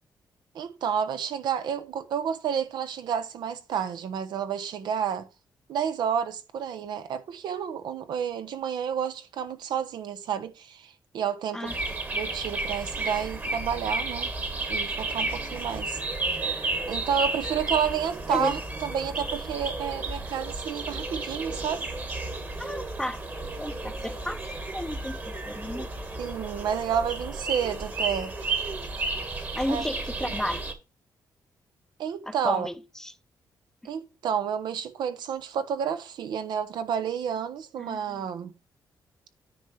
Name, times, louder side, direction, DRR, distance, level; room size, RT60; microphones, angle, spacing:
voice 1, 0.5-5.3 5.7-14.3 14.7-16.0 16.9-21.9 26.2-28.3 29.7-29.8 30.2-30.3 32.0-32.7 33.8-38.5, right 8 dB, 80° right, 1.0 m, -30 dB
sound 1, 11.7-30.7, right 2 dB, 25° right, 1.4 m, -32 dB
voice 2, 22.6-23.2 23.6-24.4 24.7-25.2 25.5-25.9 29.5-30.6 32.3-32.7 33.0-33.1 37.8-38.2, left 1 dB, 5° left, 0.4 m, -32 dB
9.8 x 3.3 x 5.6 m
cardioid pair, 135°, 7 cm